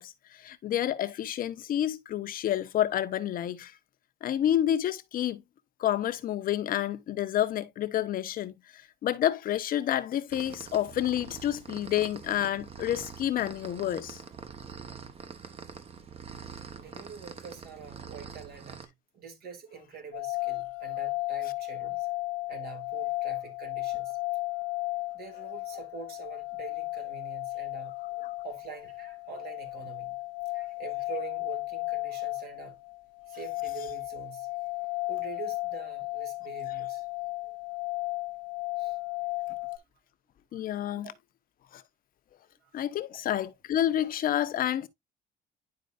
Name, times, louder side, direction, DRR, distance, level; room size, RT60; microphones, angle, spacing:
voice 1, 0.0-3.7 4.2-5.4 5.8-14.2 40.5-41.1 41.7-41.8 42.7-44.9, left 11 dB, 60° left, 0.9 m, -29 dB
sound 1, 10.3-18.9, right 6 dB, 35° right, 1.3 m, -45 dB
voice 2, 16.7-22.1 22.5-24.2 25.1-27.9 28.4-30.2 30.4-32.8 33.2-34.5 35.1-37.0 37.4-37.5 38.8-39.0 40.5-40.7 41.0-41.1 42.6-42.8 43.1-43.2, right 6 dB, 65° right, 3.0 m, -45 dB
sound 2, 20.1-39.8, left 21 dB, 85° left, 0.7 m, -34 dB
10.5 x 4.4 x 2.5 m
cardioid pair, 110°, 17 cm